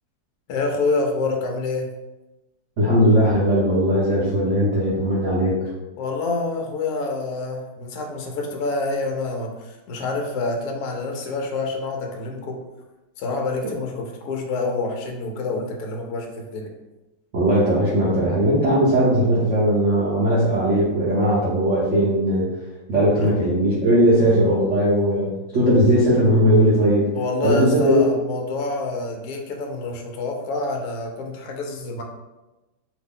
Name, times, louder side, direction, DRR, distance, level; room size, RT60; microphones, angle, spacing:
voice 1, 0.5-1.9 6.0-12.6 13.2-16.7 23.2-23.3 27.1-32.0, left 3 dB, 75° left, 2 dB, 0.8 m, -27 dB
voice 2, 2.8-5.5 17.3-22.5 22.9-27.1 27.4-28.1, equal, 65° right, -8 dB, 0.7 m, -18 dB
2.9 x 2.6 x 3.6 m, 1.1 s
omnidirectional pair, 2.2 m